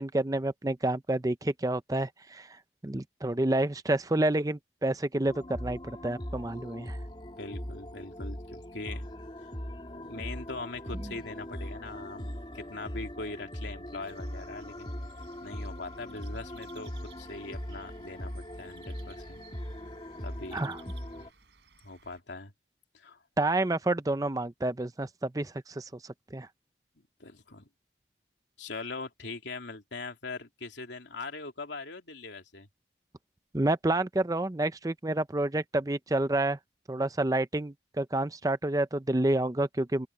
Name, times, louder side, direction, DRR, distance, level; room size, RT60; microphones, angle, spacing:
voice 1, 0.0-2.5 2.8-7.0 20.5-20.8 23.4-25.9 26.3-26.5 33.5-36.6 36.9-40.1, right 2 dB, 20° right, 0.6 m, -29 dB
sound 1, 5.3-21.3, equal, 25° left, 2.9 m, -40 dB
voice 2, 7.4-9.1 9.4-9.5 9.9-14.9 15.4-19.4 20.2-20.6 21.2-21.3 21.8-22.5 22.9-23.2 27.2-27.7 28.6-32.7, left 3 dB, 80° left, 3.1 m, -41 dB
sound 2, 14.0-22.2, right 7 dB, 75° right, 4.5 m, -59 dB
open air
head